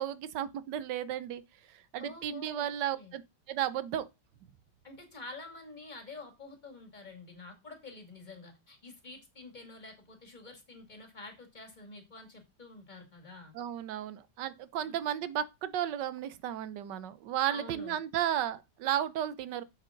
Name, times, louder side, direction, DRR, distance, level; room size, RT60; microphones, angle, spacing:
voice 1, 0.0-1.4 1.7-3.2 3.5-4.1 13.5-19.6, right 11 dB, 75° right, 1.4 m, -34 dB
voice 2, 2.0-3.1 4.8-13.5 14.8-14.9 17.5-18.0, left 3 dB, 25° left, 2.3 m, -48 dB
7.9 x 7.7 x 3.8 m
omnidirectional pair, 1.9 m